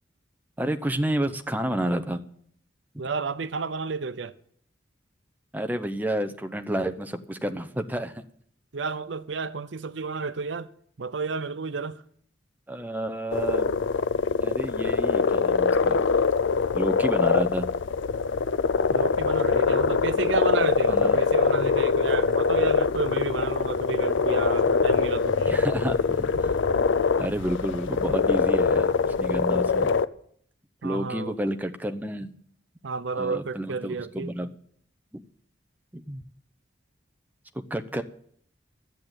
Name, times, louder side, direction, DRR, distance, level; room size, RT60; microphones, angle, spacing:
voice 1, 0.6-2.2 5.5-8.2 12.7-13.7 14.4-16.0 16.7-17.7 20.9-21.2 25.4-26.6 26.9-29.9 30.8-32.3 33.2-34.5 35.1-35.2 35.9-36.2 37.7-38.0, right 1 dB, 10° right, 0.7 m, -30 dB
voice 2, 3.0-4.3 8.7-10.7 11.0-12.0 18.9-25.5 30.8-31.4 32.8-34.3, right 4 dB, 85° right, 0.7 m, -31 dB
sound 1, 13.3-30.1, left 5 dB, 90° left, 0.5 m, -23 dB
12.0 x 7.9 x 8.8 m
head